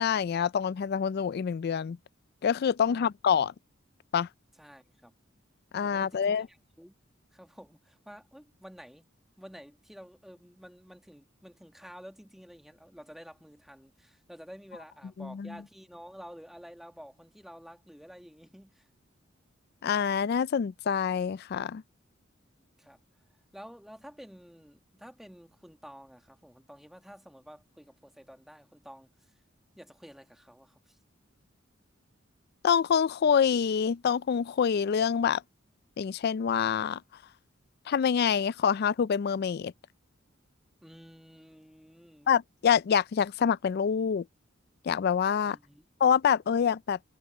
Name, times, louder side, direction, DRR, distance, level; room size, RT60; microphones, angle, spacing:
voice 1, 0.0-2.0 2.4-3.5 4.1-4.3 5.7-6.5 15.2-15.5 19.8-21.8 32.6-35.4 36.0-37.0 37.9-39.7 42.3-44.2 44.9-45.6 46.0-47.0, left 7 dB, 55° left, 0.3 m, -26 dB
voice 2, 2.8-3.1 4.6-5.1 5.8-6.9 7.3-9.1 9.4-18.9 22.5-23.0 23.5-29.1 29.7-31.0 40.8-42.3 45.4-45.8, equal, ahead, 1.6 m, -50 dB
head